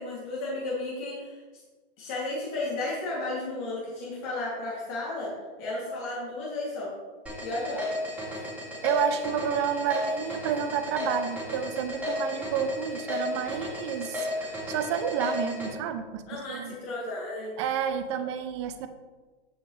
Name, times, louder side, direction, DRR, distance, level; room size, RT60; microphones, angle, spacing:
voice 1, 0.0-1.4 2.0-5.3 5.6-6.9 7.4-7.8 8.3-8.4 16.3-17.6, left 2 dB, 30° left, -7 dB, 2.8 m, -33 dB
sound 1, 7.3-15.7, left 2 dB, 5° right, 3.3 m, -33 dB
voice 2, 8.8-16.7 17.6-18.9, right 8 dB, 30° right, 10 dB, 0.6 m, -30 dB
15.0 x 5.7 x 3.3 m, 1.3 s
hypercardioid pair, 155°, 31 cm